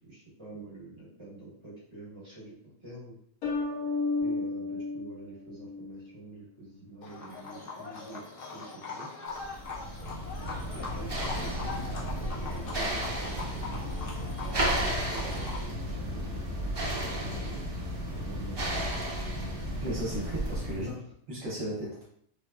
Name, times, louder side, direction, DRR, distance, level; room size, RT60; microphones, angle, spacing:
voice 1, 0.0-2.5 2.8-3.2 4.2-8.2 8.5-9.1 10.9-13.9 14.4-15.5 15.8-17.6 18.1-18.9 20.7-21.0, right 2 dB, 20° right, -7 dB, 1.1 m, -46 dB
sound 1, 3.4-6.1, left 3 dB, 80° left, 1.5 m, -32 dB
Livestock farm animals working animals, 7.0-15.6, left 4 dB, 60° left, 0.6 m, -41 dB
sound 2, 9.4-20.9, equal, 35° right, 0.4 m, -33 dB
voice 2, 19.8-20.9 21.3-22.0, equal, 65° right, -6 dB, 1.0 m, -35 dB
3.3 x 2.1 x 2.2 m, 0.67 s
omnidirectional pair, 1.6 m